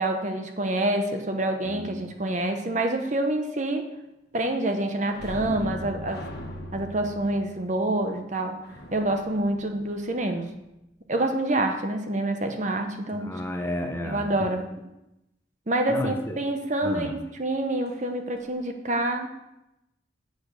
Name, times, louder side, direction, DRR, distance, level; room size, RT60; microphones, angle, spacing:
voice 1, 0.0-3.9 4.3-6.3 6.7-8.6 8.9-10.5 11.1-13.4 14.0-14.7 15.7-19.3, right 1 dB, 40° right, 5 dB, 1.0 m, -27 dB
voice 2, 1.6-2.0 13.1-14.2 15.9-16.4 16.8-17.1, left 1 dB, 10° left, 3 dB, 0.9 m, -32 dB
sound 1, 5.1-10.5 17.8-18.0 18.4-18.5, equal, 55° left, 1.5 m, -40 dB
8.2 x 6.9 x 6.7 m, 0.91 s
head